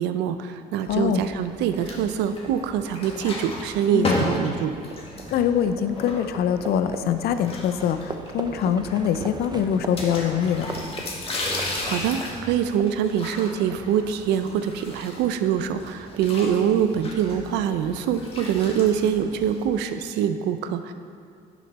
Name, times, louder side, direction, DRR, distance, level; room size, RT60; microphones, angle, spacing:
voice 1, 0.0-4.7 11.6-20.9, right 9 dB, 85° right, 10 dB, 0.6 m, -24 dB
voice 2, 0.9-1.2 3.9-4.2 5.3-10.7, left 8 dB, 70° left, 10 dB, 0.6 m, -24 dB
Livestock farm animals working animals, 0.9-19.8, right 3 dB, 25° right, 0.7 m, -41 dB
sound 1, 1.7-2.6 2.8-6.7 7.3-8.3 8.6-8.7 8.9-9.0 10.0-15.4 15.8-19.8, left 2 dB, 35° left, 1.9 m, -33 dB
11.0 x 7.1 x 4.2 m, 2.3 s
cardioid pair, 110°, 17 cm